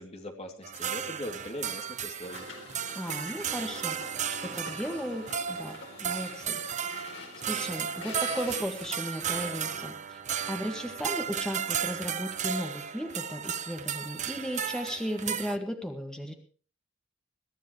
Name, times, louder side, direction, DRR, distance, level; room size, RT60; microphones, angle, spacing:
voice 1, 0.0-2.5, left 1 dB, 35° left, 3 dB, 2.8 m, -40 dB
sound 1, 0.6-15.6, right 8 dB, 40° right, 0.9 m, -34 dB
sound 2, 2.2-9.9, left 4 dB, 75° left, 4.7 m, -46 dB
voice 2, 2.9-4.0 4.4-6.6 7.4-10.2 10.5-16.3, equal, 5° left, 3 dB, 1.9 m, -36 dB
22.5 x 13.5 x 3.2 m, 0.39 s
head